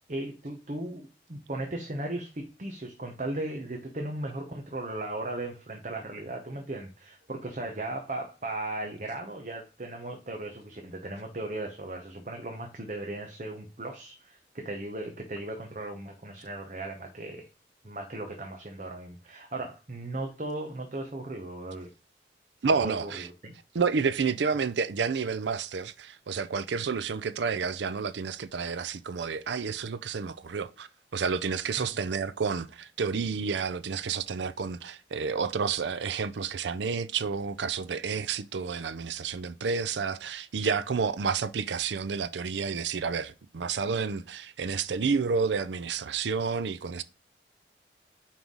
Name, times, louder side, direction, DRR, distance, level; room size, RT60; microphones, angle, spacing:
voice 1, 0.1-17.5 17.8-21.9 22.8-23.5 31.8-32.0, right 2 dB, 45° right, 0.9 m, -37 dB
voice 2, 22.6-23.3 23.7-47.0, right 5 dB, 85° right, 0.5 m, -30 dB
5.4 x 4.6 x 3.8 m
head